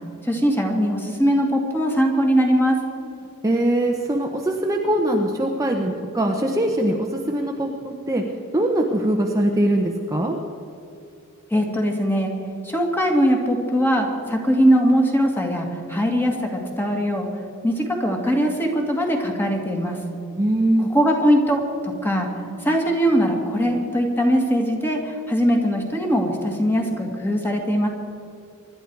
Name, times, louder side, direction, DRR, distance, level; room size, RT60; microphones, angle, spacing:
voice 1, 0.2-2.8 11.5-12.3 12.6-17.3 17.6-20.0 20.8-22.3 22.6-27.9, equal, 10° left, 1 dB, 2.1 m, -21 dB
voice 2, 3.4-8.2 8.5-10.3 20.4-20.9, right 1 dB, 15° right, 0 dB, 1.0 m, -22 dB
25.0 x 12.0 x 4.7 m, 2.6 s
head